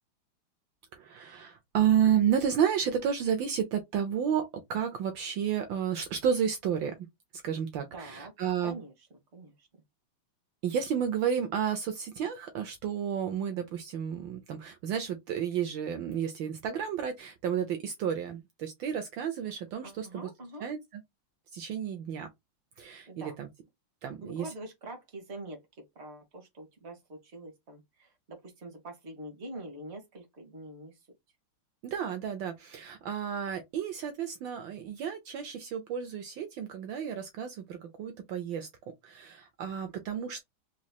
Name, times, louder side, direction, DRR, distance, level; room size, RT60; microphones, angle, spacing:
voice 1, 0.9-6.9 7.3-8.7 10.6-20.3 20.6-21.0 21.5-22.3 22.8-23.5 24.0-24.5 31.8-38.7 39.0-40.4, right 8 dB, 70° right, 1.4 m, -31 dB
voice 2, 7.9-8.3 8.6-8.9 9.3-9.7 19.8-20.7 23.1-23.4 24.2-25.6 25.9-30.9, right 1 dB, 35° right, 1.5 m, -44 dB
4.2 x 3.0 x 2.3 m
omnidirectional pair, 2.3 m